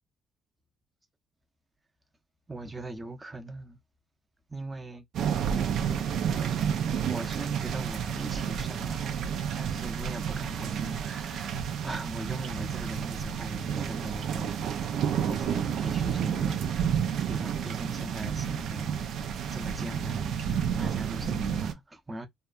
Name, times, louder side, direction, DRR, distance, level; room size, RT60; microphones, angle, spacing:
voice 1, 2.5-3.8 4.5-5.0 7.0-14.7 15.3-16.9 17.3-22.3, right 1 dB, 20° right, 0.7 m, -40 dB
sound 1, 5.1-21.7, right 8 dB, 75° right, 0.5 m, -30 dB
2.7 x 2.2 x 2.3 m
cardioid pair, 90°, 0 cm